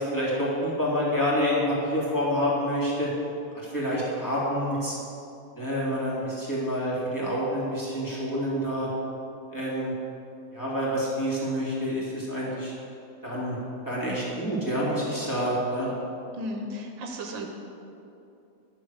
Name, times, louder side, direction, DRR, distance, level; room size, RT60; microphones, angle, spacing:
voice 1, 0.0-3.1 3.7-4.9 5.6-8.9 9.5-9.9 10.5-12.7 13.2-13.6 13.8-15.9, equal, 10° left, -7 dB, 2.8 m, -27 dB
voice 2, 16.3-17.5, equal, 80° right, 3 dB, 1.6 m, -34 dB
11.0 x 7.1 x 6.6 m, 2.7 s
omnidirectional pair, 2.0 m